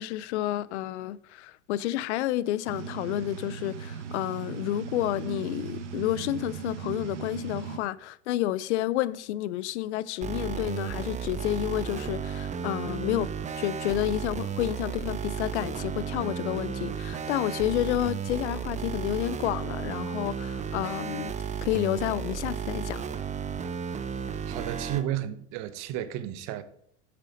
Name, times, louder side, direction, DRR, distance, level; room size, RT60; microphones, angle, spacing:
voice 1, 0.0-13.3 13.6-21.3 21.6-23.0, left 14 dB, 75° left, 0.6 m, -30 dB
sound 1, 2.7-7.8, right 7 dB, 85° right, 1.2 m, -38 dB
sound 2, 10.2-25.0, right 7 dB, 20° right, 0.7 m, -33 dB
voice 2, 24.5-26.6, right 12 dB, 50° right, 1.0 m, -32 dB
8.1 x 6.6 x 5.1 m
hypercardioid pair, 100°, 35 cm